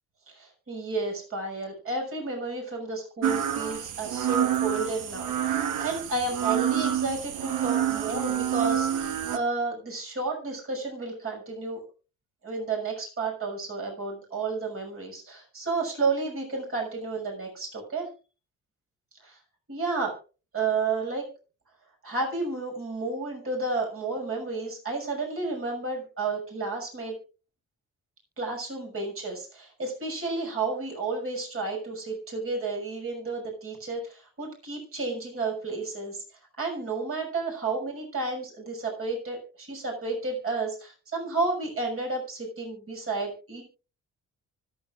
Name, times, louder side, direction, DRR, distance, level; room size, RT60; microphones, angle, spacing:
voice 1, 0.3-11.8 12.4-18.1 19.2-19.3 19.7-20.2 20.5-21.3 22.0-27.2 28.4-36.2 36.6-43.6, right 3 dB, 45° right, 1 dB, 6.3 m, -31 dB
sound 1, 3.2-9.4, right 10 dB, 80° right, 1.2 m, -28 dB
25.0 x 8.8 x 2.5 m, 0.35 s
cardioid pair, 90°, 30 cm